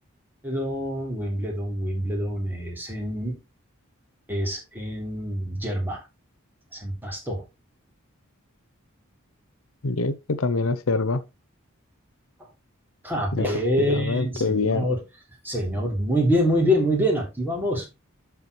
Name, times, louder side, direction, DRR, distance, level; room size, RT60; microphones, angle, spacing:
voice 1, 0.4-3.4 4.3-6.0 6.7-7.4 13.0-15.0 15.4-17.8, equal, 10° right, 3.4 m, -26 dB
voice 2, 9.8-11.2 13.3-13.5 13.8-14.8, left 3 dB, 80° left, 0.8 m, -25 dB
12.0 x 4.7 x 3.3 m
head